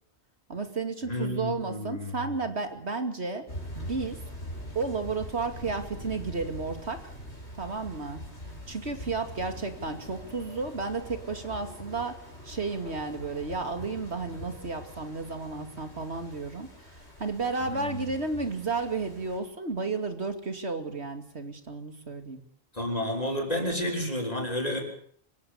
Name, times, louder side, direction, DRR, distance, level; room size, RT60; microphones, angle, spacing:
voice 1, 0.5-3.5 3.8-4.2 4.7-7.2 7.6-8.2 8.7-22.4, right 4 dB, 75° right, 8 dB, 2.9 m, -33 dB
voice 2, 1.1-2.1 17.6-18.0 22.7-24.8, left 1 dB, 35° left, 1 dB, 6.4 m, -31 dB
sound 1, 3.5-19.4, equal, 75° left, 6.4 m, -43 dB
26.0 x 16.0 x 8.6 m, 0.62 s
omnidirectional pair, 1.1 m